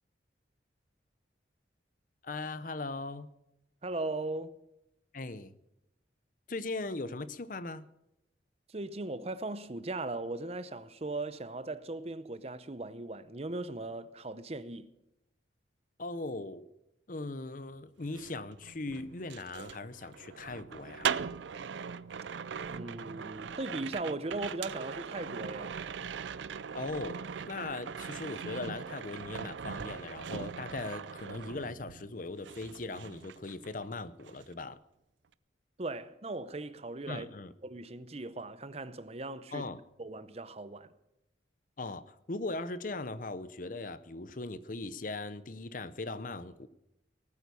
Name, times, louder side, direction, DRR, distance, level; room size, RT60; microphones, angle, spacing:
voice 1, 2.2-3.3 5.1-5.5 6.5-7.9 16.0-16.7 17.1-21.1 26.7-27.2 27.4-34.8 37.1-37.5 39.5-39.8 41.8-46.7, left 2 dB, 45° left, 0.7 m, -39 dB
voice 2, 3.8-4.6 8.7-14.9 22.7-25.7 35.8-37.3 37.6-39.6 40.0-40.9, right 2 dB, 35° right, 0.7 m, -38 dB
sound 1, 18.0-32.1 32.4-33.9 34.2-34.5, right 7 dB, 75° right, 0.5 m, -40 dB
19.0 x 9.3 x 6.9 m
head